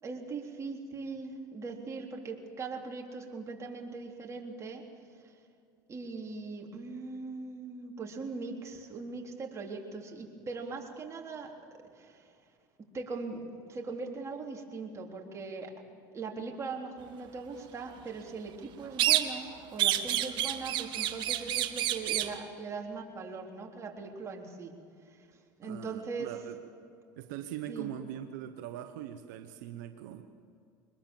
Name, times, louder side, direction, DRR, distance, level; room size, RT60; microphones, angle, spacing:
voice 1, 0.0-4.8 5.2-5.3 5.9-11.5 11.9-12.4 12.9-15.7 16.1-24.7 25.0-25.3 25.6-26.3 27.7-27.9, right 4 dB, 30° right, 0 dB, 3.6 m, -40 dB
sound 1, 19.0-19.5 19.8-22.4, right 12 dB, 55° right, 1.4 m, -29 dB
voice 2, 25.6-26.6 27.2-30.2, right 11 dB, 80° right, 7 dB, 1.2 m, -41 dB
23.0 x 21.0 x 7.4 m, 2.3 s
supercardioid pair, 100°, 10 cm